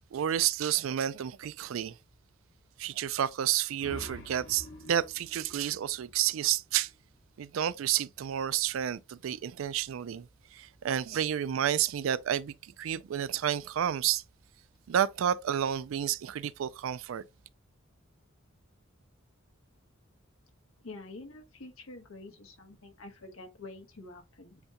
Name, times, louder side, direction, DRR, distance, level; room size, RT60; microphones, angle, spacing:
voice 1, 0.1-2.0 2.8-6.9 7.4-10.3 10.5-14.2 14.9-17.2, right 10 dB, 70° right, 0.3 m, -30 dB
sound 1, 3.5-7.0, equal, 60° left, 1.2 m, -48 dB
voice 2, 20.8-24.6, left 2 dB, 85° left, 1.2 m, -47 dB
7.9 x 2.9 x 2.2 m
head